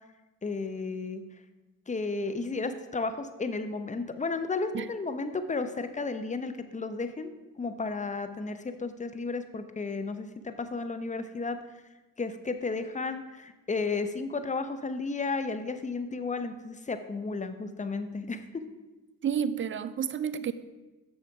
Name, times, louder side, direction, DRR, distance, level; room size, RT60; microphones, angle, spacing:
voice 1, 0.4-1.2 1.9-7.3 7.6-11.6 12.2-18.6, left 3 dB, 20° left, 10 dB, 0.8 m, -33 dB
voice 2, 19.2-20.5, right 8 dB, 30° right, 14 dB, 0.5 m, -30 dB
6.9 x 6.5 x 4.7 m, 1.2 s
hypercardioid pair, 50°, 40 cm